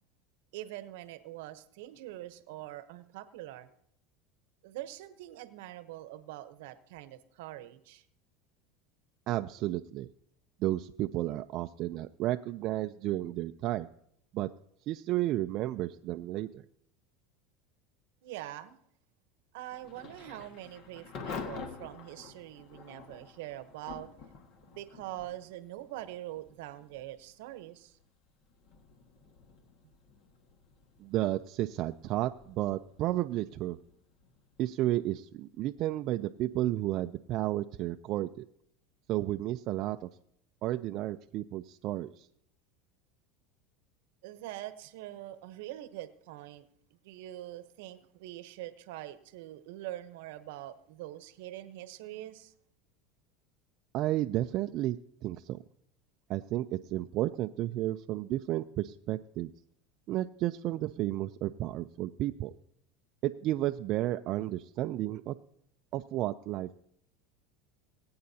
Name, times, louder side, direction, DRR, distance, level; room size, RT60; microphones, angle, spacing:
voice 1, 0.5-3.7 4.6-8.0 18.2-18.8 19.5-24.1 24.6-28.0 44.2-52.5, right 14 dB, 75° right, 12 dB, 0.9 m, -44 dB
voice 2, 9.3-10.1 10.6-13.9 14.3-14.5 14.9-16.6 31.0-33.8 34.6-38.5 39.1-40.1 40.6-42.3 53.9-55.6 56.3-59.5 60.1-62.5 63.2-65.3 65.9-66.7, right 15 dB, 50° right, 7 dB, 0.4 m, -32 dB
Thunder / Rain, 19.7-36.4, left 5 dB, 55° left, 1.6 m, -49 dB
21.0 x 8.6 x 2.8 m, 0.71 s
supercardioid pair, 115°, 0 cm